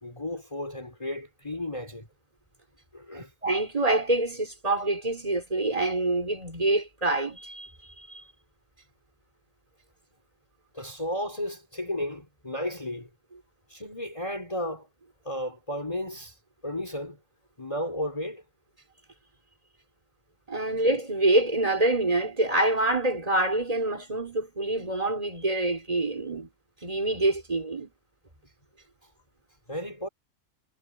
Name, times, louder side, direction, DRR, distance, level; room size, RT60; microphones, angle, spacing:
voice 1, 0.0-2.1 2.9-3.3 10.7-13.1 13.7-14.9 15.2-17.2 17.6-18.4 20.7-20.8 29.7-30.1, left 1 dB, 25° left, 4.7 m, -34 dB
voice 2, 3.2-7.7 8.1-8.2 20.5-26.5 26.8-27.9, right 2 dB, 25° right, 3.6 m, -26 dB
omnidirectional pair, 1.3 m